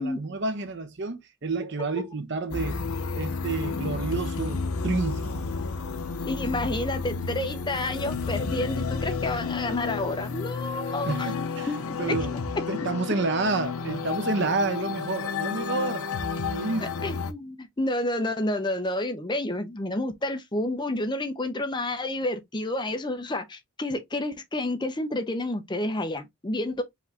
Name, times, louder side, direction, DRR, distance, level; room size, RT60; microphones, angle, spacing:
voice 1, 0.0-2.8 3.1-5.4 11.0-11.7 12.0-12.4 12.7-16.1 16.5-16.9, right 3 dB, 55° right, 0.8 m, -29 dB
sound 1, 2.5-17.3, left 5 dB, 80° left, 0.7 m, -31 dB
voice 2, 6.3-11.3 11.7-12.2 12.6-12.7 17.0-26.8, left 1 dB, 20° left, 0.6 m, -30 dB
5.0 x 2.7 x 3.4 m
head